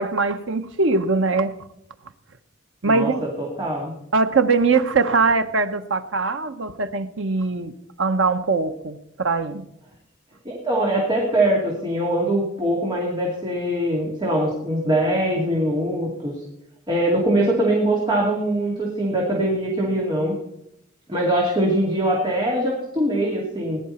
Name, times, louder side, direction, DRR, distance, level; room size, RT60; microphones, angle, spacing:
voice 1, 0.0-1.6 2.8-3.2 4.1-7.7 8.0-9.7, right 4 dB, 80° right, 1.0 m, -21 dB
voice 2, 2.9-3.9 10.4-16.3 16.9-20.3 21.1-23.8, right 1 dB, 25° right, 2.4 m, -22 dB
19.5 x 10.5 x 4.4 m
head